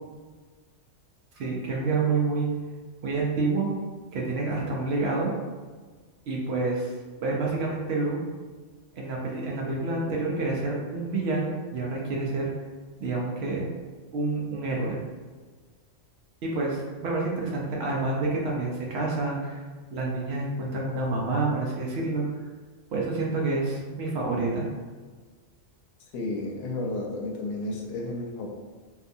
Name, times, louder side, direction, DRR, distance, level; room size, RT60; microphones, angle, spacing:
voice 1, 1.4-2.5 3.0-3.7 4.1-5.3 6.3-6.9 7.2-8.2 9.0-12.5 13.0-13.7 14.1-15.0 16.4-19.6 19.9-22.3 22.9-24.6, right 3 dB, 65° right, -3 dB, 0.7 m, -28 dB
voice 2, 26.1-28.5, left 2 dB, 75° left, 0 dB, 0.9 m, -32 dB
2.6 x 2.3 x 2.6 m, 1.4 s
omnidirectional pair, 1.3 m